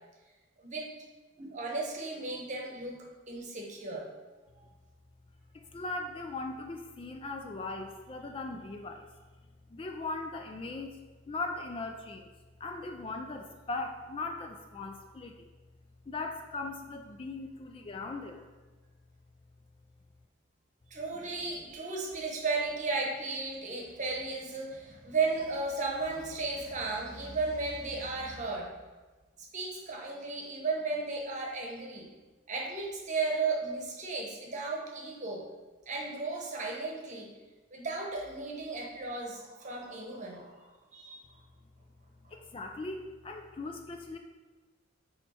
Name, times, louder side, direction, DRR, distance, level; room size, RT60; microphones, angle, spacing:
voice 1, 0.6-0.9 1.4-4.1 4.5-4.7 20.9-28.7 29.5-32.1 32.5-35.5 35.9-37.3 37.7-40.7 40.9-41.2 42.2-42.3, right 3 dB, 35° right, -1 dB, 1.0 m, -35 dB
voice 2, 5.5-9.1 9.7-11.0 11.3-12.3 12.6-15.3 16.1-18.4 42.3-44.2, left 3 dB, 25° left, 4 dB, 0.3 m, -39 dB
7.8 x 3.1 x 4.3 m, 1.3 s
head